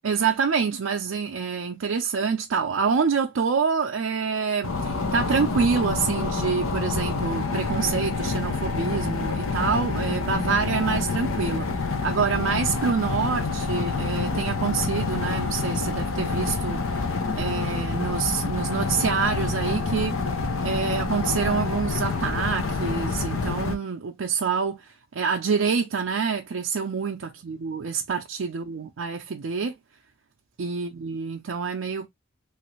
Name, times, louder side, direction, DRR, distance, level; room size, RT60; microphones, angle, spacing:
voice 1, 0.0-16.8 17.3-20.2 20.6-29.7 30.6-32.1, right 5 dB, 70° right, 0.4 m, -26 dB
sound 1, 4.6-23.8, left 4 dB, 85° left, 0.7 m, -27 dB
3.1 x 2.5 x 3.0 m
head